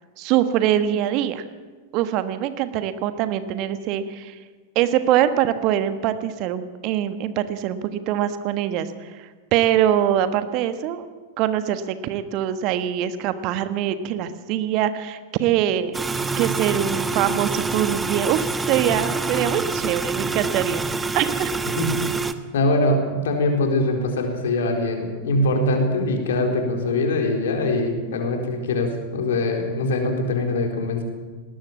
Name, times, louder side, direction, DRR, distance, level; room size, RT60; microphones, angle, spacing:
voice 1, 0.2-1.4 1.9-4.4 4.7-11.1 11.4-16.0 16.4-20.8 21.1-21.5, right 11 dB, 40° right, 11 dB, 1.3 m, -23 dB
sound 1, 15.9-22.3, right 3 dB, 10° right, 1.2 m, -26 dB
voice 2, 21.8-22.2 22.5-31.0, left 2 dB, 60° left, 3 dB, 4.1 m, -23 dB
19.0 x 19.0 x 7.5 m, 1.4 s
figure-of-eight pair, 90°, 0 cm